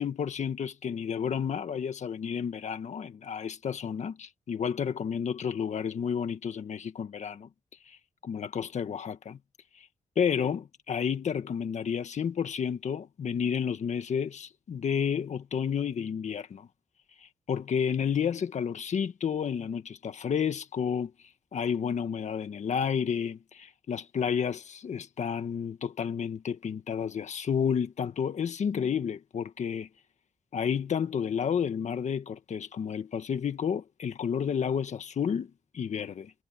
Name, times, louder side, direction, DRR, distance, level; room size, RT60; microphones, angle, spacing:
voice 1, 0.0-7.5 8.2-9.4 9.8-9.9 10.1-16.7 17.5-21.1 21.5-29.9 30.5-36.3, left 7 dB, 65° left, 1.6 m, -31 dB
wide cardioid pair, 140°, 13 cm